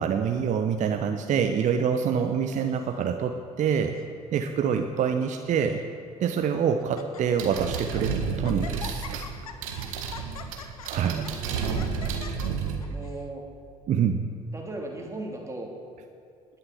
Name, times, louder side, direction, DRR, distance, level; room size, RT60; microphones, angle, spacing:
voice 1, 0.0-3.9 4.3-5.8 6.2-9.3 10.6-11.3 13.9-14.2, right 7 dB, 45° right, 6 dB, 0.9 m, -26 dB
Laughter, 2.2-3.0 3.7-4.1 4.3-4.4 5.2-5.8 6.4-6.5 6.8-7.2 7.6-8.0 8.4-13.2, left 7 dB, 75° left, 0.8 m, -44 dB
sound 1, 7.4-12.8, right 5 dB, 70° right, 1.5 m, -31 dB
voice 2, 10.7-11.7 12.9-13.5 14.5-15.8, right 2 dB, 15° right, -1 dB, 3.3 m, -38 dB
20.0 x 6.9 x 7.9 m, 2.3 s
figure-of-eight pair, 50°, 18 cm